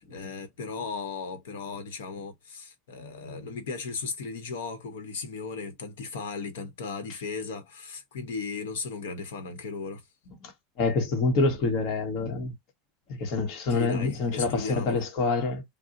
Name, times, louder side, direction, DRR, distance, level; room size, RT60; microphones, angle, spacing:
voice 1, 0.0-10.0 13.7-15.0, left 4 dB, 90° left, 0.9 m, -36 dB
voice 2, 10.8-12.5 13.1-15.6, left 3 dB, 50° left, 1.1 m, -26 dB
2.5 x 2.0 x 3.8 m
supercardioid pair, 130°, 0 cm